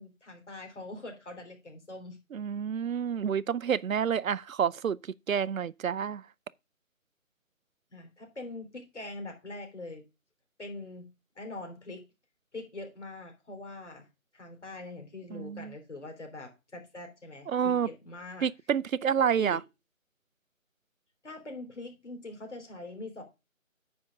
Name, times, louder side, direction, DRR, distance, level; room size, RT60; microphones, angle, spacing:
voice 1, 0.0-2.2 7.9-10.0 10.6-11.1 11.4-12.1 12.5-14.1 14.3-18.5 19.0-19.1 19.4-19.6 21.2-23.2, left 2 dB, 55° left, 3.4 m, -43 dB
voice 2, 2.3-5.0 5.3-6.2 15.3-15.7 17.5-17.9 18.4-19.6, right 7 dB, 75° right, 0.5 m, -28 dB
9.5 x 3.6 x 6.4 m
figure-of-eight pair, 175°, 41 cm